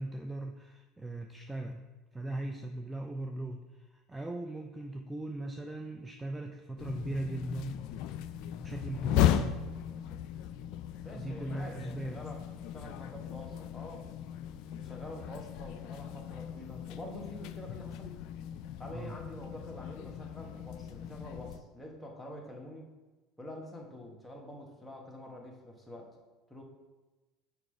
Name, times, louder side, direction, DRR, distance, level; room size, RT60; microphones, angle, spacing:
voice 1, 0.0-1.8 2.1-7.8 8.6-9.6 11.1-12.2 18.9-19.2, right 2 dB, 10° right, 4 dB, 0.5 m, -39 dB
sound 1, 6.8-21.6, left 10 dB, 60° left, 0.4 m, -36 dB
voice 2, 11.0-12.4 12.7-14.0 14.7-18.2 18.8-22.9 23.4-26.1 26.5-26.6, left 1 dB, 10° left, 0 dB, 1.6 m, -46 dB
6.0 x 4.9 x 4.7 m, 1.2 s
hypercardioid pair, 75°, 0 cm